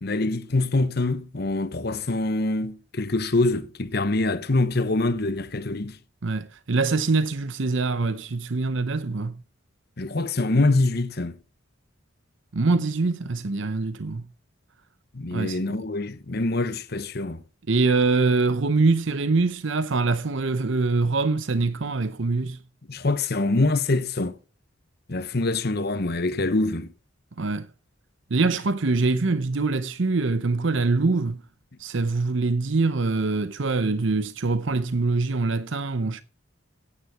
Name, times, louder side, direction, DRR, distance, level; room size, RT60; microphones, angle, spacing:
voice 1, 0.0-6.0 10.0-11.4 15.1-17.4 22.9-24.3 25.1-26.9, left 2 dB, 50° left, 1.0 m, -25 dB
voice 2, 6.2-9.3 12.5-14.2 15.3-15.8 17.7-22.6 27.4-27.7 28.3-31.4 31.8-36.2, right 3 dB, 65° right, 0.7 m, -24 dB
9.7 x 9.5 x 5.9 m
head